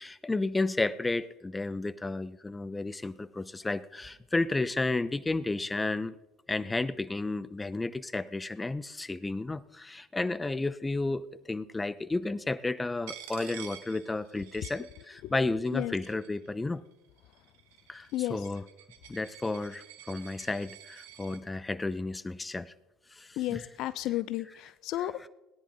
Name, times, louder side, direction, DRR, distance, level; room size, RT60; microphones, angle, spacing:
voice 1, 0.0-6.1 6.5-16.8 17.9-18.6 19.1-22.7 23.1-23.7 25.0-25.3, left 2 dB, 15° left, 18 dB, 0.6 m, -32 dB
Coin (dropping), 13.1-15.4 15.7-16.5 17.2-21.4, right 11 dB, 75° right, 1.0 m, -49 dB
voice 2, 23.4-25.1, left 15 dB, 60° left, 17 dB, 0.4 m, -32 dB
18.5 x 10.5 x 3.9 m, 1.0 s
hypercardioid pair, 65°, 0 cm